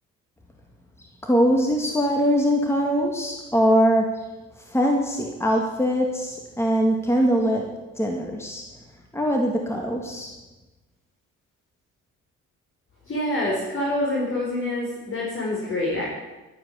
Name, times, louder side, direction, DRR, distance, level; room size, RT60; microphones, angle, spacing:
voice 1, 1.2-4.2 4.7-7.7 8.0-8.6 9.1-10.3, equal, 10° left, 1 dB, 2.0 m, -22 dB
voice 2, 13.1-16.1, left 1 dB, 45° left, -4 dB, 4.6 m, -26 dB
12.5 x 9.1 x 8.6 m, 1.1 s
cardioid pair, 90°, 30 cm